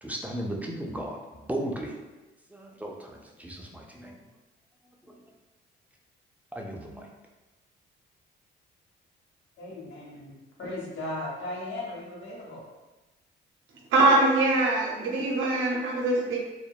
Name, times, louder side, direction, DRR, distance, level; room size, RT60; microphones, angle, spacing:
voice 1, 0.0-1.9 2.5-4.2 5.1-5.2 6.5-7.1, right 1 dB, 10° right, 0 dB, 0.3 m, -36 dB
voice 2, 9.6-12.6, left 1 dB, 70° left, -3 dB, 0.8 m, -37 dB
voice 3, 13.9-16.4, right 2 dB, 85° right, 0 dB, 0.6 m, -23 dB
2.6 x 2.1 x 2.2 m, 1.1 s
cardioid pair, 90°, 20 cm